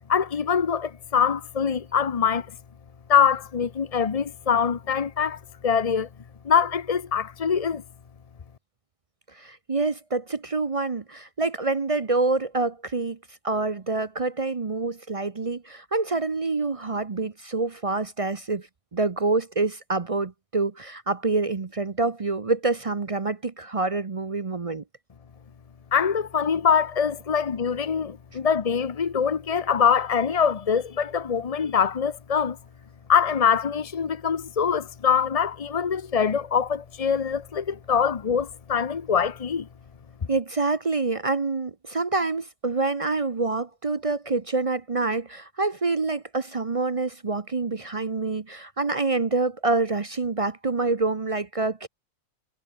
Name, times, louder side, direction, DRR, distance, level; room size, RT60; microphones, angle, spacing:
voice 1, 0.1-2.5 3.1-6.1 6.4-7.8 25.9-32.6 33.1-39.7, left 7 dB, 40° left, 0.5 m, -23 dB
voice 2, 9.3-13.2 13.4-18.7 18.9-24.8 40.3-51.9, right 3 dB, 35° right, 0.6 m, -26 dB
omnidirectional pair, 1.6 m